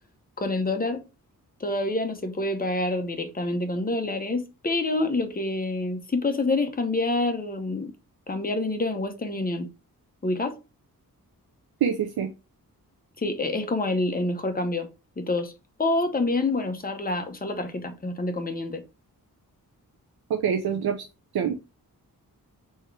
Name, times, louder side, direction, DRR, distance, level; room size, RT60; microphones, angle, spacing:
voice 1, 0.4-1.0 1.6-7.9 8.3-9.7 10.2-10.6 13.2-14.9 15.2-15.5 15.8-18.8, left 2 dB, 25° left, 0.9 m, -27 dB
voice 2, 11.8-12.3 20.3-21.0 21.3-21.5, right 8 dB, 85° right, 0.6 m, -25 dB
4.4 x 3.5 x 3.3 m
wide cardioid pair, 100°, 36 cm